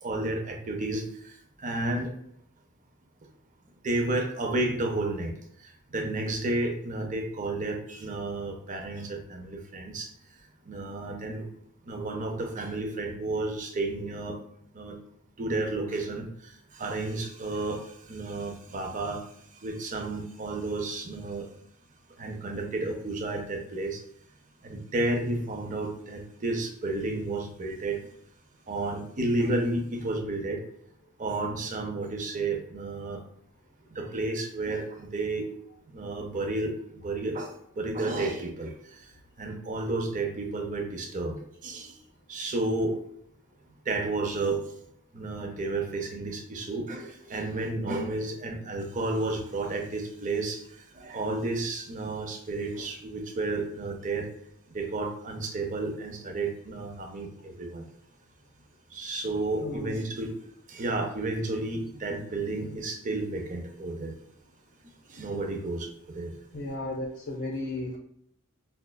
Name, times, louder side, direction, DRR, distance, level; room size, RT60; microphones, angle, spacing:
voice 1, 0.0-2.1 3.8-5.3 5.6-10.1 10.7-11.5 11.9-14.4 14.7-15.0 15.4-19.3 19.6-21.5 22.2-24.0 24.6-28.0 28.7-30.6 31.2-33.2 33.9-35.5 35.9-39.0 39.4-41.9 42.3-43.0 43.9-44.6 45.1-50.6 51.0-54.3 54.7-57.8 58.9-60.3 60.7-64.1 65.1-65.9 66.1-66.3, right 2 dB, 35° right, 3 dB, 0.5 m, -31 dB
voice 2, 59.6-60.0 66.5-68.0, left 2 dB, 60° left, -1 dB, 0.6 m, -34 dB
5.1 x 2.3 x 2.2 m, 0.68 s
head